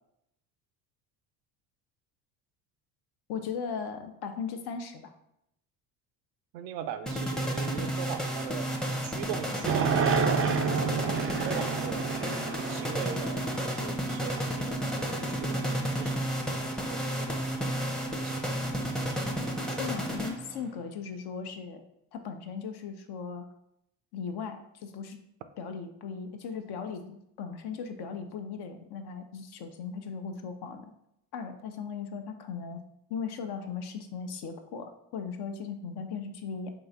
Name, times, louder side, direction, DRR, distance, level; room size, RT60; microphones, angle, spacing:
voice 1, 3.3-5.1 19.7-21.8 22.1-23.5 24.1-25.2 25.6-30.9 31.3-32.8 33.1-36.7, left 6 dB, 55° left, 6 dB, 0.7 m, -38 dB
voice 2, 6.5-8.8 9.0-10.5 11.0-12.1 12.7-13.4 13.7-16.2 16.9-17.4 18.2-18.4, right 9 dB, 85° right, 10 dB, 0.6 m, -40 dB
sound 1, 7.1-20.7, right 1 dB, ahead, 0.6 m, -32 dB
sound 2, 9.6-14.0, right 6 dB, 30° right, 0.4 m, -30 dB
3.8 x 2.6 x 3.9 m, 0.80 s
hypercardioid pair, 70°, 48 cm